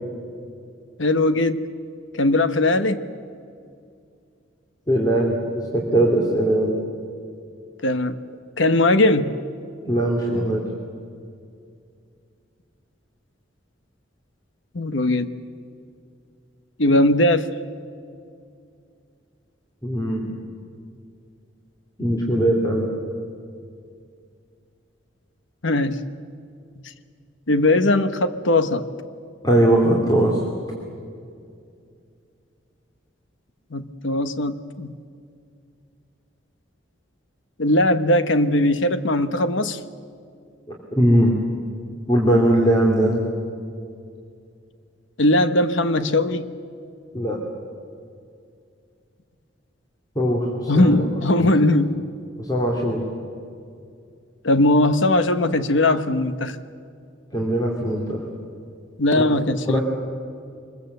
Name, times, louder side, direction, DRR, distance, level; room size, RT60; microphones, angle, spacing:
voice 1, 1.0-1.6 2.1-3.0 7.8-8.2 8.6-9.3 14.7-15.3 16.8-17.5 25.6-26.0 27.5-28.9 33.7-34.9 37.6-39.8 45.2-46.4 50.7-52.0 54.4-56.6 59.0-59.8, left 1 dB, 75° left, 11 dB, 1.2 m, -19 dB
voice 2, 4.9-6.8 9.8-10.6 19.8-20.3 22.0-23.0 29.4-30.4 40.7-41.3 42.1-43.3 47.1-47.4 50.1-51.1 51.4-51.5 52.4-53.0 57.3-58.2 59.1-59.3 59.6-59.8, right 1 dB, 20° left, -2 dB, 2.7 m, -20 dB
25.0 x 21.5 x 8.0 m, 2.3 s
head